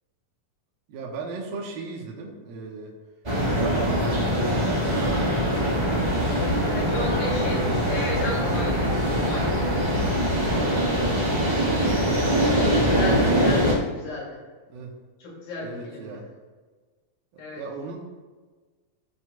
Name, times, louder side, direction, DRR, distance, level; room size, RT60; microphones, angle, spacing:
voice 1, 0.9-2.9 3.4-5.5 5.9-8.0 10.5-12.5 14.7-15.0 15.6-16.3 17.3-18.0, right 3 dB, 75° right, -1 dB, 2.9 m, -37 dB
sound 1, 3.2-13.7, equal, 40° right, 0.6 m, -23 dB
Telephone, 4.4-5.6 6.4-7.6 8.4-9.6, left 4 dB, 15° right, 1.9 m, -42 dB
voice 2, 6.7-9.5 12.6-14.4 15.2-16.2 17.4-17.6, left 2 dB, 75° left, -5 dB, 4.5 m, -33 dB
15.5 x 7.8 x 2.4 m, 1.4 s
omnidirectional pair, 4.2 m